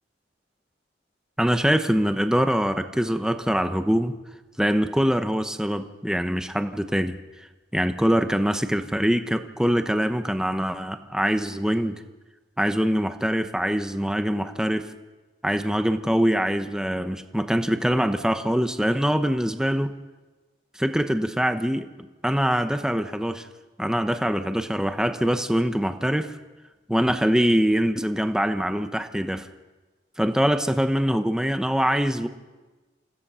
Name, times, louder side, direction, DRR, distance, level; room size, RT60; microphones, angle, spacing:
voice 1, 1.4-4.2 4.6-7.2 7.7-12.0 12.6-14.9 15.4-19.9 20.8-21.9 22.2-23.5 23.8-26.3 26.9-29.5 30.2-32.3, equal, 5° right, 8 dB, 1.0 m, -23 dB
29.0 x 16.0 x 5.7 m, 1.2 s
head